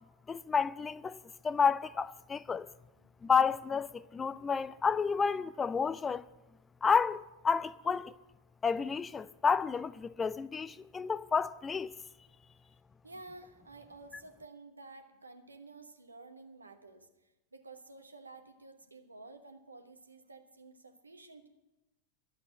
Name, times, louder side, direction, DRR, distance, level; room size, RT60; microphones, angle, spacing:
voice 1, 0.3-1.2 1.4-2.7 3.2-6.2 6.8-8.1 8.6-11.9, left 6 dB, 15° left, 0.3 m, -30 dB
voice 2, 13.0-21.5, right 3 dB, 80° right, 1.1 m, -52 dB
11.5 x 8.0 x 8.5 m
figure-of-eight pair, 90°, 0 cm